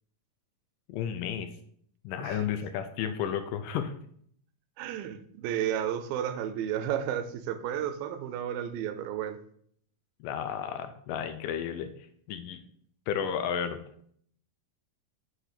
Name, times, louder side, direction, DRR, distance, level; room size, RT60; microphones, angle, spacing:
voice 1, 0.9-1.5 2.0-3.9 10.2-11.9 12.3-12.6 13.1-13.8, left 8 dB, 80° left, 7 dB, 2.1 m, -32 dB
voice 2, 4.8-9.4, right 10 dB, 85° right, 8 dB, 2.4 m, -32 dB
6.3 x 3.4 x 5.7 m, 0.63 s
omnidirectional pair, 4.0 m